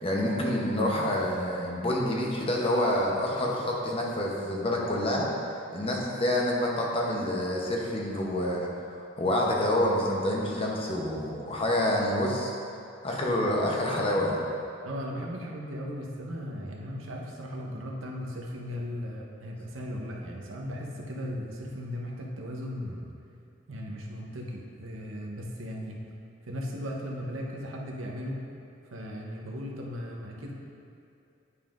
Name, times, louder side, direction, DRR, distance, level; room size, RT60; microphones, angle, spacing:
voice 1, 0.0-5.3 5.7-8.7 9.2-12.5 13.0-14.4, left 1 dB, 30° left, -2 dB, 0.8 m, -27 dB
voice 2, 14.8-23.1 23.7-26.0 26.4-28.4 28.9-30.5, equal, 85° right, -1 dB, 0.9 m, -37 dB
9.6 x 5.4 x 2.5 m, 2.6 s
head